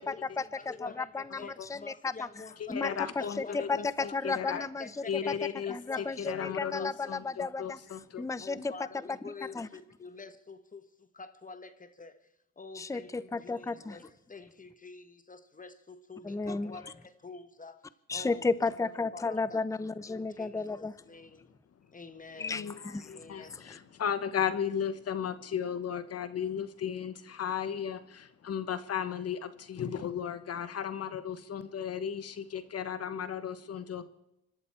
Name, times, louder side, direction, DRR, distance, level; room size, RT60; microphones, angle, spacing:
voice 1, 0.0-2.3 2.7-4.9 5.3-5.4 5.7-7.8 8.2-8.7 9.5-9.7 12.7-14.0 16.2-16.7 18.1-20.9 22.4-23.1 23.5-23.8, left 4 dB, 10° left, 0.7 m, -33 dB
voice 2, 0.5-5.3 5.6-7.0 8.4-12.2 12.6-17.8 18.1-18.7 19.1-19.6 20.1-21.5 21.9-22.7 23.0-23.7, left 4 dB, 25° left, 1.4 m, -47 dB
voice 3, 1.3-1.7 2.6-4.6 5.1-8.2 22.4-34.0, left 8 dB, 55° left, 1.1 m, -35 dB
25.0 x 13.0 x 4.5 m
cardioid pair, 90°, 30 cm